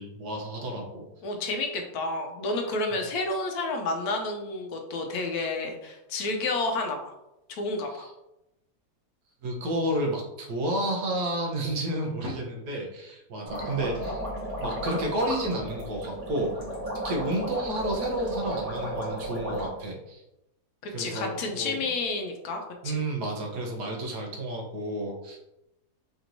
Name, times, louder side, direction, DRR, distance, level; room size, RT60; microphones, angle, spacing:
voice 1, 0.0-1.1 7.9-8.1 9.4-14.2 14.6-16.5 17.0-20.2 20.9-21.8 22.8-25.4, right 1 dB, 75° right, 0 dB, 1.4 m, -31 dB
voice 2, 1.2-7.1 7.5-8.1 13.5-13.8 21.0-23.0, left 2 dB, 75° left, 3 dB, 1.0 m, -30 dB
sound 1, 13.5-19.7, right 1 dB, 25° right, 1.3 m, -34 dB
5.0 x 3.0 x 2.6 m, 0.89 s
omnidirectional pair, 1.8 m